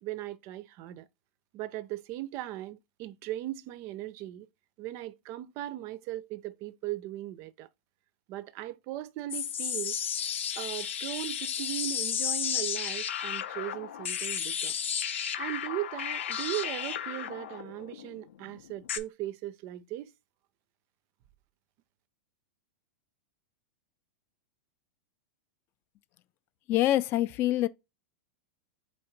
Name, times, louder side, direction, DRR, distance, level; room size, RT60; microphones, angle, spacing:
voice 1, 0.0-1.1 1.5-4.5 4.8-7.7 8.3-10.0 10.6-14.7 15.4-20.1, right 15 dB, 45° right, 0.4 m, -38 dB
sound 1, 9.3-19.0, left 9 dB, 85° left, 0.6 m, -33 dB
voice 2, 26.7-27.7, left 14 dB, 35° left, 0.3 m, -25 dB
4.2 x 2.8 x 4.4 m
hypercardioid pair, 125°, 6 cm